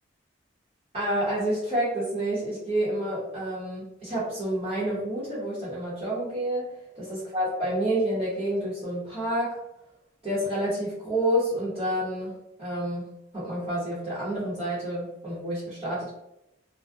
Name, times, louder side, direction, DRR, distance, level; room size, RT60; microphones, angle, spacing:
voice 1, 0.9-6.7 6.9-9.6 10.2-13.0 13.3-16.1, right 1 dB, 30° right, -10 dB, 0.9 m, -29 dB
2.4 x 2.1 x 2.4 m, 0.86 s
head